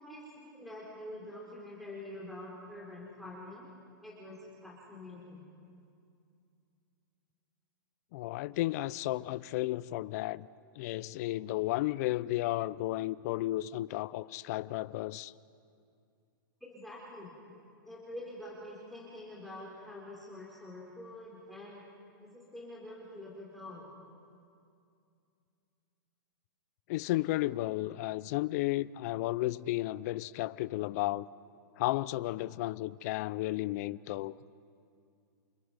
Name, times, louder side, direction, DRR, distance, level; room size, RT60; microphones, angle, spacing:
voice 1, 0.0-3.7 4.0-5.5 16.6-17.3 17.8-21.8 22.2-23.9, left 1 dB, ahead, 4.2 m, -46 dB
voice 2, 8.1-10.5 10.8-15.3 26.9-31.3 31.8-34.3, left 17 dB, 50° left, 0.5 m, -33 dB
28.5 x 25.5 x 5.1 m
hypercardioid pair, 140°, 11 cm